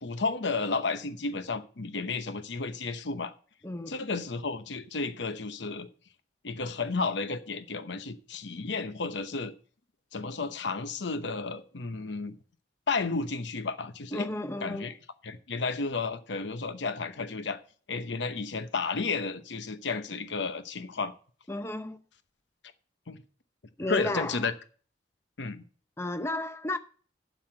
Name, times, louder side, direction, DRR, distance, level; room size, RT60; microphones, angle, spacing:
voice 1, 0.0-3.3 3.9-5.9 6.4-9.5 10.1-12.4 12.9-14.3 14.6-14.9 15.2-17.6 17.9-21.1 23.1-23.2 23.9-24.5 25.4-25.6, left 4 dB, 75° left, 0.9 m, -32 dB
voice 2, 3.6-3.9 14.1-14.9 21.5-22.0 23.8-24.4 26.0-26.8, left 1 dB, 15° left, 0.6 m, -33 dB
7.5 x 6.5 x 7.7 m
head